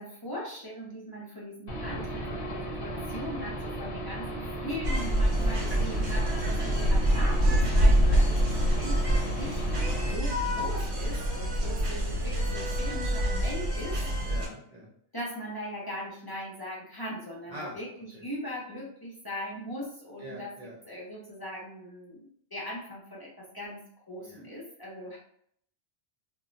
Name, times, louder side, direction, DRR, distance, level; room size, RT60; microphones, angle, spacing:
voice 1, 0.0-9.6 10.0-14.3 15.1-20.5 20.8-25.2, equal, 30° left, -5 dB, 0.5 m, -40 dB
Aircraft / Engine, 1.7-10.1, right 1 dB, 55° left, 0.8 m, -35 dB
sound 1, 4.8-14.5, equal, 70° right, 0.9 m, -26 dB
voice 2, 5.4-5.8 14.3-14.9 17.5-17.8 18.1-18.2 20.2-20.7 24.2-24.4, equal, 45° right, -4 dB, 0.6 m, -43 dB
2.2 x 2.1 x 3.7 m, 0.67 s
omnidirectional pair, 1.2 m